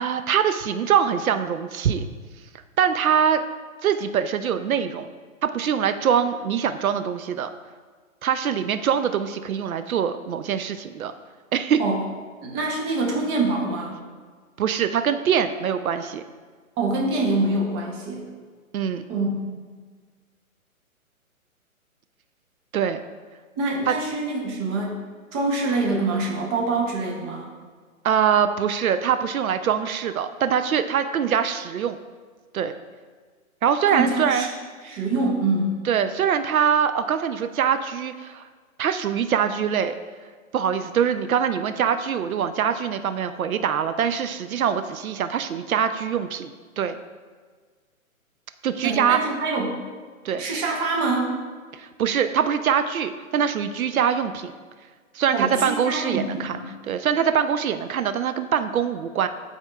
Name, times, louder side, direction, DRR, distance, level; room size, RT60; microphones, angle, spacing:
voice 1, 0.0-2.0 2.8-3.4 3.8-5.1 5.4-7.5 8.2-11.1 11.5-11.8 14.6-16.2 18.7-19.0 22.7-23.0 23.9-24.0 28.0-32.0 32.5-32.7 33.6-34.5 35.9-38.4 38.8-40.0 40.5-47.0 48.6-49.2 50.2-50.4 51.7-54.5 55.1-56.6 56.9-59.3, right 8 dB, 75° right, 10 dB, 0.5 m, -23 dB
voice 2, 12.4-14.0 16.8-18.3 19.1-19.3 23.6-25.0 25.3-27.5 33.9-34.5 34.8-35.8 48.8-49.8 50.4-51.4 55.3-56.7, right 2 dB, 15° right, -1 dB, 0.7 m, -25 dB
12.0 x 4.3 x 2.3 m, 1.5 s
hypercardioid pair, 135°, 43 cm